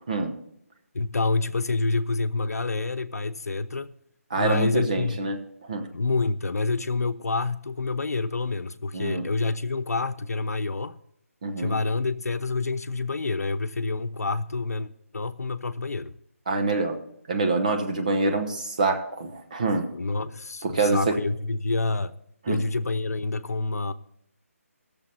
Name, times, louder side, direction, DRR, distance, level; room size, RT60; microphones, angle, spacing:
voice 1, 0.9-3.9 4.3-5.2 5.9-11.0 11.6-16.1 19.9-22.1 22.5-23.9, left 3 dB, 90° left, 0.8 m, -27 dB
voice 2, 4.3-5.9 8.9-9.3 11.4-11.8 16.5-17.0 17.3-19.9 20.6-21.1 22.5-22.6, right 3 dB, 30° right, 0.9 m, -26 dB
17.0 x 6.9 x 4.2 m
hypercardioid pair, 175°, 8 cm